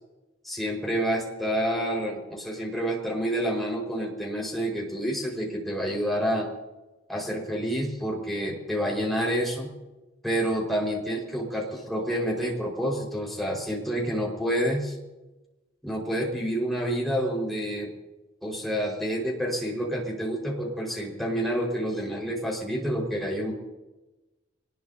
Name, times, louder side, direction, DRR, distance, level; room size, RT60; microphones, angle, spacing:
voice 1, 0.4-6.5 7.1-9.7 10.2-14.9 15.8-17.9 18.4-23.5, equal, ahead, -2 dB, 4.9 m, -28 dB
25.0 x 20.5 x 2.8 m, 1.1 s
head